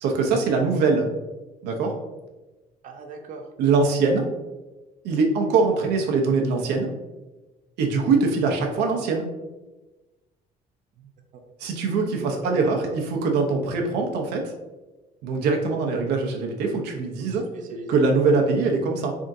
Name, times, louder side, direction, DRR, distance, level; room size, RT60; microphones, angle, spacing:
voice 1, 0.0-1.1 1.6-1.9 3.6-4.3 5.0-6.9 7.8-9.3 11.6-14.5 15.2-17.4 17.9-19.2, right 4 dB, 90° right, 2 dB, 0.7 m, -22 dB
voice 2, 2.8-3.5 11.0-11.1 12.2-12.6 12.9-13.0 17.2-17.9, right 3 dB, 50° right, 3 dB, 0.5 m, -39 dB
3.6 x 3.5 x 2.6 m, 1.1 s
cardioid pair, 110°, 17 cm